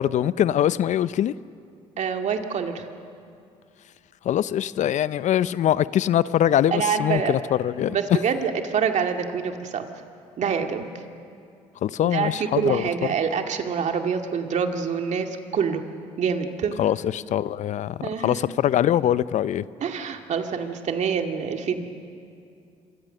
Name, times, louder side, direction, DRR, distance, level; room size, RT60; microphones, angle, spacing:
voice 1, 0.0-1.3 4.2-8.0 11.8-12.9 16.8-19.6, left 11 dB, 60° left, 17 dB, 0.6 m, -23 dB
voice 2, 2.0-2.9 6.7-7.4 7.9-9.9 10.4-10.9 12.0-15.8 16.2-16.8 18.0-18.4 19.8-21.8, right 6 dB, 55° right, 5 dB, 2.2 m, -26 dB
27.0 x 23.5 x 6.7 m, 2.4 s
supercardioid pair, 60°, 14 cm